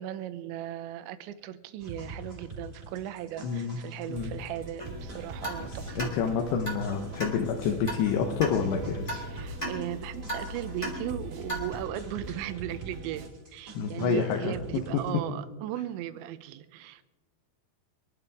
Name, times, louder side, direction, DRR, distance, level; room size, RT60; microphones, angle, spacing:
voice 1, 0.0-6.1 9.1-17.0, right 12 dB, 90° right, 12 dB, 3.0 m, -37 dB
sound 1, 1.8-15.1, right 1 dB, 20° right, 4.9 m, -45 dB
voice 2, 3.4-3.8 4.1-4.3 6.0-9.2 13.7-14.6, left 6 dB, 75° left, 2 dB, 3.1 m, -28 dB
sound 2, 4.1-13.3, right 4 dB, 70° right, 3.5 m, -48 dB
sound 3, 4.8-11.8, equal, 10° left, 2.0 m, -38 dB
25.5 x 12.0 x 3.6 m, 1.2 s
omnidirectional pair, 5.2 m